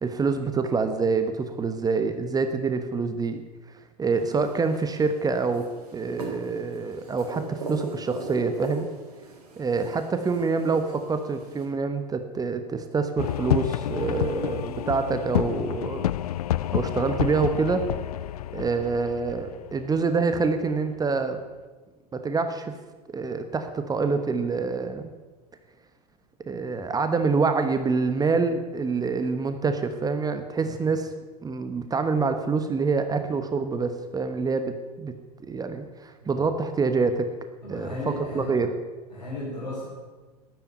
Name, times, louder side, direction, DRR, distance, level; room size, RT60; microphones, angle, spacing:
voice 1, 0.0-3.4 4.0-5.7 5.9-8.9 9.6-16.1 16.7-17.9 18.5-21.4 22.1-22.7 23.1-25.0 26.5-31.1 31.4-35.1 35.5-37.3 37.7-37.9 38.3-38.7, right 4 dB, 20° right, 8 dB, 1.2 m, -26 dB
sound 1, 4.1-11.6, right 3 dB, 65° right, 3.8 m, -40 dB
sound 2, 13.2-20.7, left 12 dB, 65° left, 0.5 m, -29 dB
voice 2, 30.6-30.9 36.2-36.5 37.6-38.6 39.1-39.9, left 2 dB, 85° left, -7 dB, 5.4 m, -36 dB
13.0 x 11.0 x 9.2 m, 1.3 s
figure-of-eight pair, 80°, 21 cm